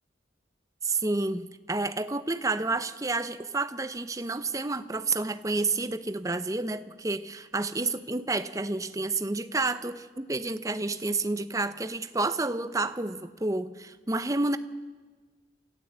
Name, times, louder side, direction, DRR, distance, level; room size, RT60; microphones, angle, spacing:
voice 1, 0.8-14.6, right 3 dB, 15° right, 12 dB, 0.7 m, -30 dB
27.0 x 14.5 x 8.2 m, 1.4 s
head